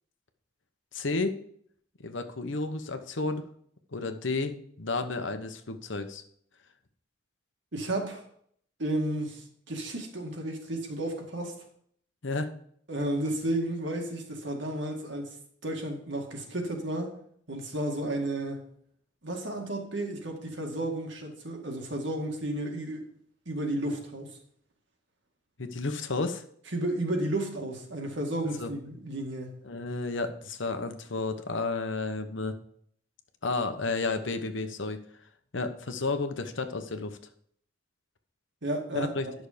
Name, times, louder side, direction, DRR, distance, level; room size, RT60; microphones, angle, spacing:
voice 1, 0.9-1.4 2.0-3.4 3.9-6.2 12.2-12.5 25.6-26.4 28.6-28.7 29.6-32.6 33.4-35.0 35.5-37.2 38.9-39.3, left 3 dB, 70° left, 8 dB, 1.0 m, -32 dB
voice 2, 7.7-8.2 8.8-11.5 12.9-15.3 15.6-17.1 17.5-18.6 19.2-23.0 23.5-24.3 26.7-29.6 38.6-39.3, right 1 dB, 65° right, 2 dB, 2.0 m, -32 dB
10.5 x 6.3 x 5.1 m, 0.64 s
head